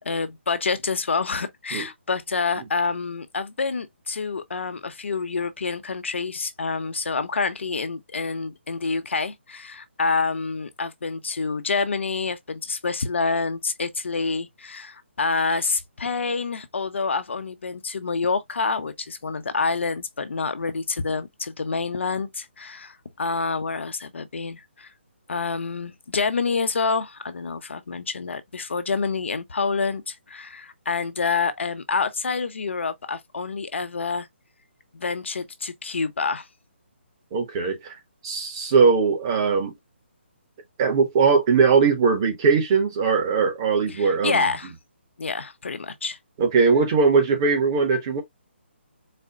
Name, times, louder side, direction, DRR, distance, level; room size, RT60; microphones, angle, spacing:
voice 1, 0.0-24.9 25.3-34.3 34.9-36.5 43.9-44.7 45.2-46.2, left 4 dB, 75° left, 0.9 m, -27 dB
voice 2, 37.3-38.0 38.2-39.7 40.8-44.5 46.4-48.2, right 5 dB, 20° right, 0.9 m, -20 dB
4.2 x 2.1 x 3.6 m
hypercardioid pair, 170°, 7 cm